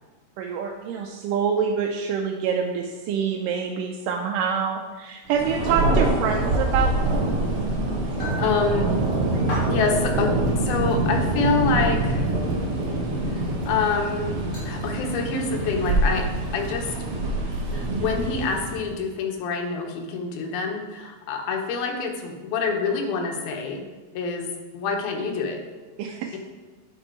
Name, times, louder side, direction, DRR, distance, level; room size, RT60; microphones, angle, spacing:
voice 1, 0.4-7.1 8.4-8.5 9.3-9.7 26.0-26.4, right 6 dB, 85° right, 3 dB, 1.9 m, -26 dB
Thunder, 5.3-18.9, right 2 dB, 65° right, 1.4 m, -25 dB
voice 2, 7.3-7.8 8.4-8.9 9.7-12.3 13.3-14.4 14.6-16.9 17.7-23.8 24.1-25.6, left 4 dB, 80° left, 3 dB, 2.9 m, -27 dB
sound 1, 8.0-8.5 9.3-9.8 10.3-10.5 11.4-11.5 13.4-13.6 14.5-14.6, equal, 40° left, 3.4 m, -33 dB
10.0 x 5.4 x 4.5 m, 1.3 s
omnidirectional pair, 4.3 m